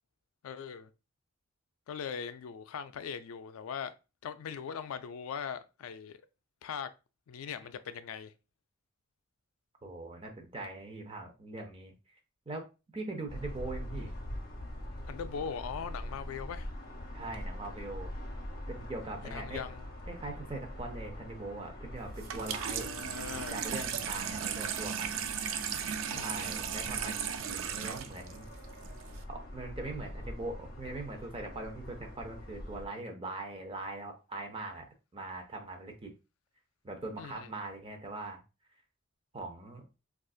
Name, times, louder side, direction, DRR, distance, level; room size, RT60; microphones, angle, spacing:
voice 1, 0.4-0.9 1.9-3.9 4.2-6.2 6.6-6.9 7.3-8.3 15.1-16.7 19.3-19.9 22.8-23.6 26.1-26.5 37.2-37.5, left 7 dB, 85° left, 0.3 m, -40 dB
voice 2, 9.8-11.9 12.5-12.6 12.9-14.1 17.1-18.1 18.7-19.6 20.1-22.9 23.5-25.3 26.1-28.5 29.3-36.1 36.8-38.4 39.3-39.8, right 2 dB, 25° right, 0.6 m, -41 dB
sound 1, 13.3-32.9, left 1 dB, 45° left, 0.8 m, -44 dB
Water tap faucet / Sink (filling or washing), 22.2-29.2, right 8 dB, 70° right, 0.4 m, -36 dB
3.8 x 2.4 x 2.3 m
head